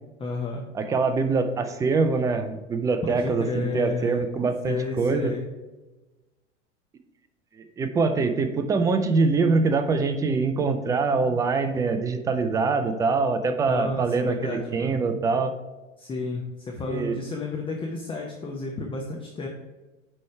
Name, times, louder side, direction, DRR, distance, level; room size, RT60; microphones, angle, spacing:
voice 1, 0.2-0.6 3.0-4.2 4.6-5.4 13.7-15.0 16.0-19.5, left 3 dB, 15° left, 0 dB, 0.7 m, -31 dB
voice 2, 0.7-5.3 7.8-15.5 16.9-17.2, right 4 dB, 10° right, 8 dB, 0.3 m, -24 dB
9.3 x 3.3 x 4.6 m, 1.1 s
figure-of-eight pair, 85°, 38 cm